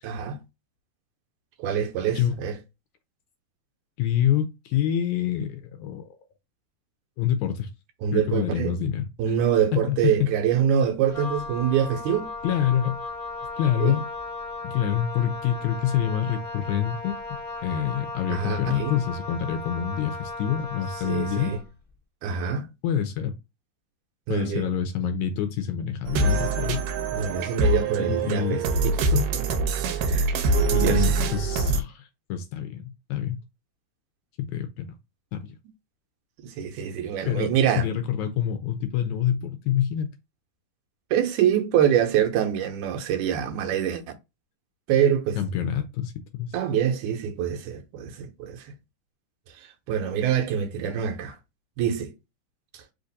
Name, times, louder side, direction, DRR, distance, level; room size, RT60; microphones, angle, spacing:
voice 1, 0.0-0.4 1.6-2.6 8.0-8.8 9.2-12.3 13.8-14.0 18.3-19.0 21.0-21.6 22.2-22.7 24.3-24.7 27.1-28.6 29.1-29.5 30.0-30.3 30.8-31.1 36.4-37.9 41.1-44.0 44.9-45.4 46.5-48.8 49.6-51.4 51.8-52.1 52.7-52.8, right 8 dB, 75° right, 2.1 m, -25 dB
voice 2, 4.0-6.0 7.2-7.7 8.1-9.1 9.7-10.1 12.4-13.0 13.6-14.0 14.6-17.2 17.6-21.5 22.8-23.3 24.3-26.8 28.1-28.6 30.7-33.4 34.5-34.9 35.3-35.4 37.3-40.1 45.3-46.5, left 9 dB, 80° left, 1.7 m, -26 dB
Wind instrument woodwind instrument, 11.1-21.7, left 3 dB, 20° left, 1.0 m, -36 dB
sound 1, 26.1-31.8, right 3 dB, 90° right, 2.3 m, -24 dB
5.0 x 2.5 x 4.0 m
omnidirectional pair, 3.8 m